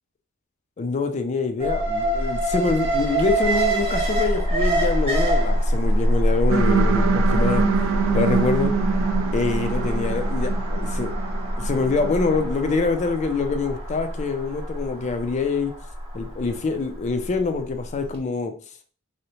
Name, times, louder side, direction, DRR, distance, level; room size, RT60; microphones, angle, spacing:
voice 1, 0.8-7.6 8.1-8.7 9.3-11.1 11.6-15.7 16.1-18.5, left 4 dB, 35° left, 7 dB, 0.3 m, -25 dB
Alarm, 1.6-17.7 18.0-18.1, right 1 dB, 25° right, 0.6 m, -24 dB
sound 1, 6.5-12.5, right 6 dB, 60° right, 0.3 m, -25 dB
2.6 x 2.0 x 2.8 m, 0.40 s
head